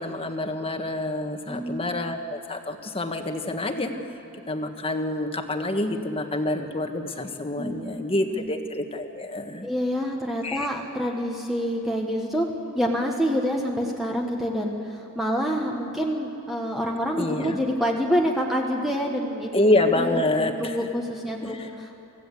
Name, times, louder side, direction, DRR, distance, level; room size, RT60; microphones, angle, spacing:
voice 1, 0.0-3.9 4.5-9.7 10.4-10.7 17.2-17.6 19.5-20.8 21.4-21.7, left 2 dB, 25° left, 5 dB, 1.5 m, -27 dB
voice 2, 1.5-2.0 7.6-8.0 8.3-8.5 9.6-12.5 12.7-19.5 19.9-22.0, equal, ahead, -1 dB, 1.4 m, -27 dB
25.5 x 15.5 x 8.3 m, 3.0 s
head